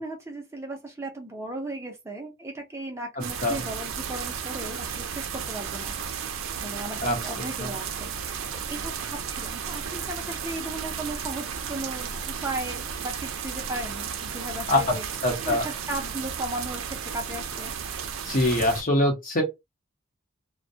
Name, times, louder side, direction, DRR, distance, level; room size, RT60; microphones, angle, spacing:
voice 1, 0.0-5.9 6.6-15.0 15.4-17.7, right 1 dB, 15° right, 0.6 m, -36 dB
voice 2, 3.2-3.6 7.0-7.2 7.6-7.7 14.7-14.8 15.2-15.6 18.2-19.4, left 1 dB, 40° left, 0.8 m, -23 dB
sound 1, 3.2-18.8, right 7 dB, 75° right, 0.5 m, -34 dB
2.2 x 2.2 x 2.7 m
head